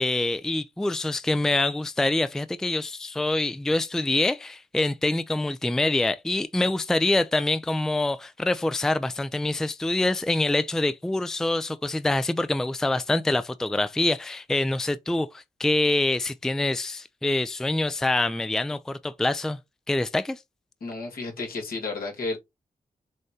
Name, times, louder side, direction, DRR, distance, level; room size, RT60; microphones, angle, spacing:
voice 1, 0.0-19.6 19.9-20.4, left 2 dB, 5° left, 0.3 m, -25 dB
voice 2, 20.8-22.4, left 3 dB, 75° left, 1.5 m, -32 dB
6.4 x 2.2 x 2.7 m
cardioid pair, 45°, 15 cm